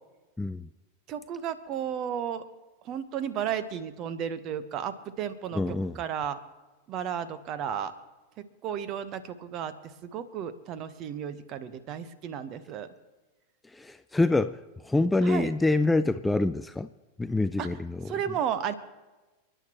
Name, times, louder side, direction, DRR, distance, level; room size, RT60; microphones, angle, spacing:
voice 1, 0.4-0.7 5.5-6.0 13.7-16.9 17.2-18.1, left 2 dB, 5° left, 12 dB, 0.4 m, -26 dB
voice 2, 1.1-2.4 2.8-6.4 6.9-7.9 8.4-12.9 15.2-15.5 17.6-17.7 18.1-18.7, right 8 dB, 35° right, 13 dB, 1.1 m, -33 dB
29.5 x 10.0 x 3.0 m, 1.1 s
figure-of-eight pair, 90°, 0 cm